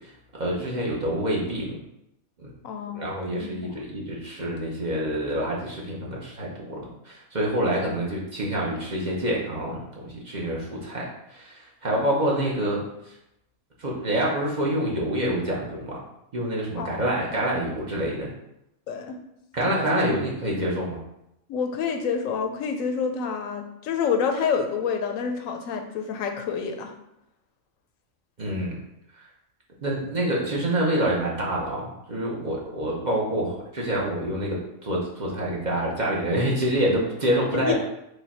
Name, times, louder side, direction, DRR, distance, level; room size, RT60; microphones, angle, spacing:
voice 1, 0.0-1.8 2.4-2.5 2.9-12.8 13.8-16.0 16.3-18.3 19.5-21.0 28.4-28.8 29.8-37.7, right 1 dB, 40° right, -4 dB, 0.8 m, -27 dB
voice 2, 2.6-3.8 11.9-12.2 16.8-17.0 18.9-19.2 19.9-20.0 21.5-26.9 37.5-37.7, left 6 dB, 90° left, 5 dB, 1.0 m, -28 dB
4.9 x 2.2 x 4.1 m, 0.84 s
omnidirectional pair, 1.3 m